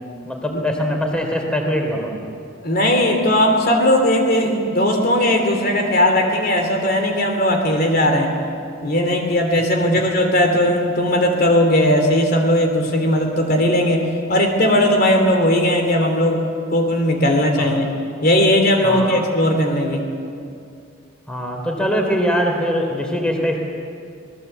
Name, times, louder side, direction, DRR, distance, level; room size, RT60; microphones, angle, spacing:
voice 1, 0.2-2.2 17.6-17.8 18.8-19.2 21.3-23.6, equal, 5° left, 2 dB, 3.2 m, -22 dB
voice 2, 2.6-8.3 8.8-16.4 16.7-17.9 18.2-20.0, left 1 dB, 50° left, 4 dB, 3.1 m, -17 dB
27.5 x 19.5 x 8.1 m, 2.4 s
head